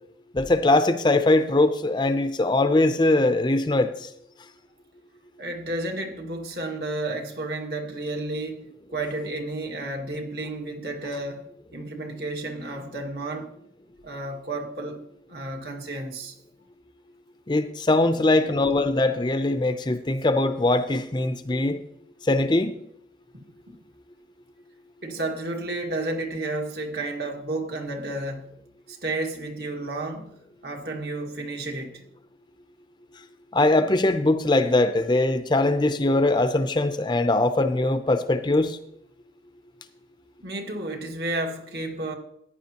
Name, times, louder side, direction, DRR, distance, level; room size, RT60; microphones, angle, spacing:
voice 1, 0.3-4.1 17.5-21.8 22.2-22.7 33.5-38.8, left 2 dB, 25° left, 0.5 m, -21 dB
voice 2, 5.4-8.6 8.9-11.5 11.7-13.5 14.0-15.0 15.3-16.3 23.3-23.8 25.0-28.5 28.9-30.3 30.6-32.0 40.4-42.1, right 2 dB, 65° right, 1.8 m, -32 dB
14.5 x 9.9 x 2.9 m
head